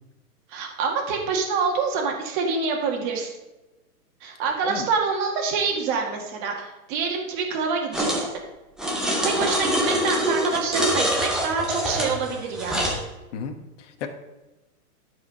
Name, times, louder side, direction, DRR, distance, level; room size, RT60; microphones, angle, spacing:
voice 1, 0.5-3.3 4.2-8.4 9.2-13.0, right 5 dB, 30° right, 1 dB, 2.0 m, -26 dB
sound 1, 7.9-8.3 8.8-13.0, equal, ahead, 0.7 m, -25 dB
voice 2, 13.3-14.1, left 6 dB, 50° left, 4 dB, 1.4 m, -33 dB
12.5 x 4.9 x 5.6 m, 1.1 s
hypercardioid pair, 155°, 46 cm